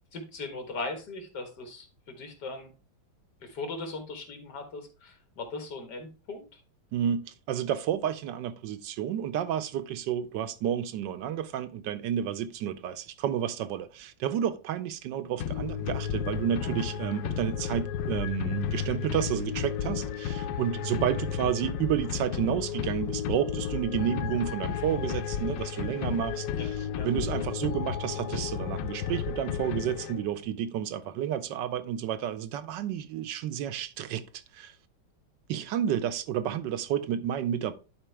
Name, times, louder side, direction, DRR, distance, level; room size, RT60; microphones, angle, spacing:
voice 1, 0.1-2.7 3.4-6.4 16.6-16.8 26.6-26.7 26.9-27.1, left 3 dB, 65° left, 2.1 m, -39 dB
voice 2, 6.9-34.7 35.5-37.7, right 10 dB, 80° right, 1.3 m, -31 dB
sound 1, 15.4-30.5, left 8 dB, 80° left, 1.3 m, -33 dB
11.0 x 4.4 x 3.4 m
omnidirectional pair, 2.0 m